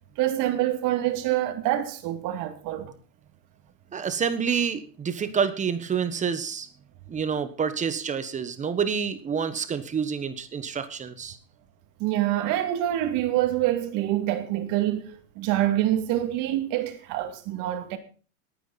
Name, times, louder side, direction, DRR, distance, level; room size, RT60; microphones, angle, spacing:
voice 1, 0.2-2.9 12.0-18.0, right 13 dB, 40° right, 2.4 m, -26 dB
voice 2, 3.9-6.7 7.1-11.4, right 6 dB, 15° right, 1.2 m, -28 dB
20.0 x 9.3 x 4.1 m
supercardioid pair, 135°, 46 cm